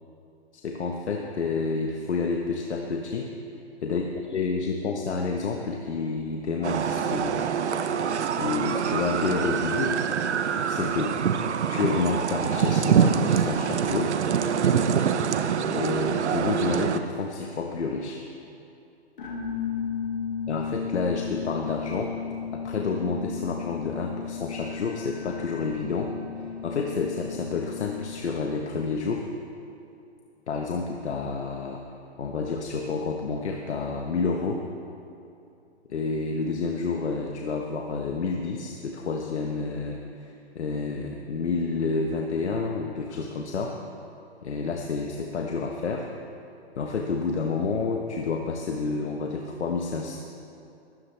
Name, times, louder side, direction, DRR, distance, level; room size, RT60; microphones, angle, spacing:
voice 1, 0.5-3.3 3.8-7.4 8.3-10.0 10.7-11.2 11.7-14.1 15.7-18.2 20.5-22.1 22.5-29.3 30.5-31.8 32.2-34.6 35.9-43.8 44.4-46.1 46.8-50.2, left 4 dB, 85° left, 1 dB, 1.4 m, -29 dB
sound 1, 6.6-17.0, right 7 dB, 85° right, 0.9 m, -25 dB
sound 2, 19.2-28.4, left 7 dB, 50° left, 2.2 m, -34 dB
18.0 x 13.5 x 3.4 m, 2.6 s
hypercardioid pair, 175°, 33 cm